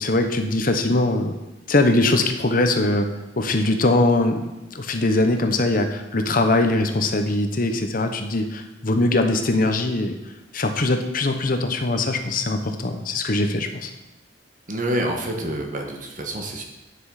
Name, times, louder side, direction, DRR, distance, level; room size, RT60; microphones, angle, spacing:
voice 1, 0.0-1.3 1.7-3.1 3.4-10.2 10.5-13.9, left 2 dB, 50° left, 6 dB, 1.0 m, -21 dB
voice 2, 14.7-16.6, right 1 dB, 45° right, 2 dB, 1.4 m, -27 dB
10.0 x 6.2 x 4.9 m, 1.0 s
head